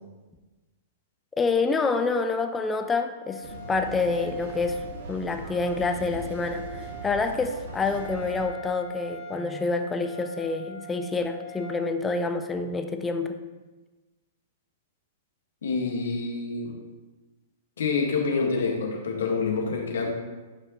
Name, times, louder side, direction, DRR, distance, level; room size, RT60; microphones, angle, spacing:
voice 1, 1.4-13.4, left 4 dB, 15° left, 6 dB, 0.7 m, -27 dB
Wind instrument woodwind instrument, 1.8-11.8, right 3 dB, 35° left, 1.7 m, -43 dB
sound 1, 3.4-8.4, right 2 dB, 70° right, 1.9 m, -40 dB
voice 2, 15.6-16.8 17.8-20.1, left 4 dB, 75° left, 1 dB, 1.6 m, -27 dB
11.5 x 5.6 x 3.1 m, 1.2 s
hypercardioid pair, 115°, 0 cm